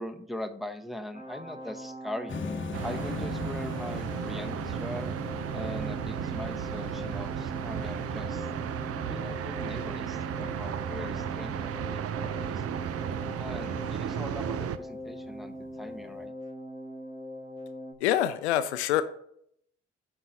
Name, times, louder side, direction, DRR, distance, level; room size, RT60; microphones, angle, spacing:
voice 1, 0.0-2.4 2.8-5.1 5.5-8.5 9.1-12.6 13.4-16.3, left 1 dB, ahead, 6 dB, 1.0 m, -41 dB
sound 1, 1.1-17.9, equal, 15° right, 2.6 m, -41 dB
sound 2, 2.3-16.3, left 4 dB, 35° left, 1.0 m, -43 dB
sound 3, 2.7-14.8, right 9 dB, 45° right, 0.6 m, -34 dB
voice 2, 18.0-19.0, left 12 dB, 80° left, 12 dB, 0.5 m, -25 dB
9.6 x 4.5 x 5.4 m, 0.68 s
figure-of-eight pair, 40°, 33 cm